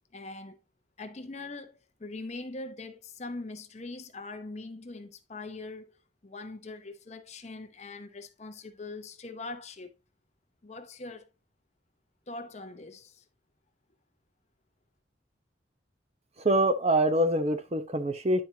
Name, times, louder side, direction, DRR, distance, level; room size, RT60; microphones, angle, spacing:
voice 1, 0.1-0.6 1.0-9.9 10.6-11.3 12.3-13.2, left 3 dB, 35° left, 0.7 m, -42 dB
voice 2, 16.4-18.4, right 1 dB, 35° right, 0.8 m, -25 dB
10.5 x 4.4 x 2.8 m
head